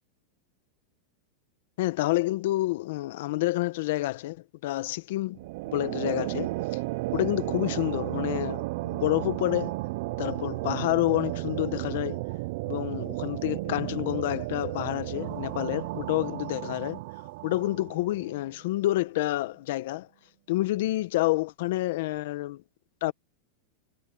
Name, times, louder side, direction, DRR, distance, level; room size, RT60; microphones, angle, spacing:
voice 1, 1.8-4.4 4.6-5.4 5.7-6.5 7.1-9.7 10.2-12.2 12.6-17.0 17.4-20.1 20.5-22.6 23.0-23.1, left 17 dB, 60° left, 1.2 m, -28 dB
sound 1, 5.3-18.5, right 21 dB, 55° right, 0.4 m, -33 dB
supercardioid pair, 160°, 0 cm